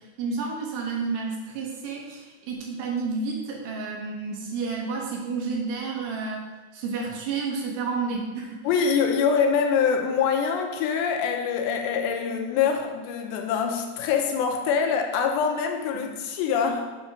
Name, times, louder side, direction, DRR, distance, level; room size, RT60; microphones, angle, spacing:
voice 1, 0.2-6.4 6.7-8.6 15.9-16.0, right 4 dB, 75° right, -1 dB, 3.3 m, -30 dB
voice 2, 8.6-16.9, left 6 dB, 90° left, 3 dB, 2.9 m, -24 dB
7.6 x 4.4 x 6.0 m, 1.3 s
omnidirectional pair, 4.9 m